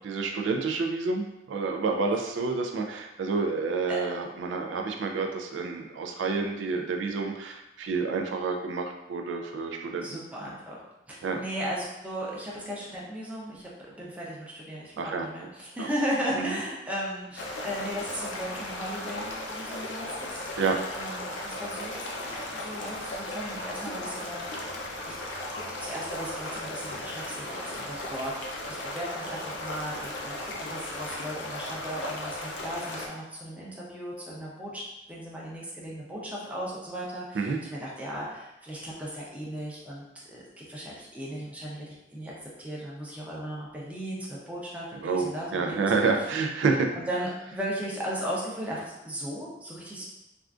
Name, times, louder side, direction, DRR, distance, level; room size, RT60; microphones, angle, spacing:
voice 1, 0.0-10.2 11.2-11.4 15.0-15.3 15.8-15.9 16.4-16.6 20.6-20.8 37.3-37.6 45.0-46.9, right 4 dB, 85° right, 3 dB, 0.3 m, -29 dB
voice 2, 10.0-10.8 11.1-20.4 20.9-22.0 22.5-25.1 25.6-46.3 47.1-50.0, equal, 10° right, -5 dB, 0.5 m, -36 dB
sound 1, 17.4-33.1, left 1 dB, 85° left, 0.5 m, -36 dB
3.4 x 2.4 x 2.4 m, 0.93 s
head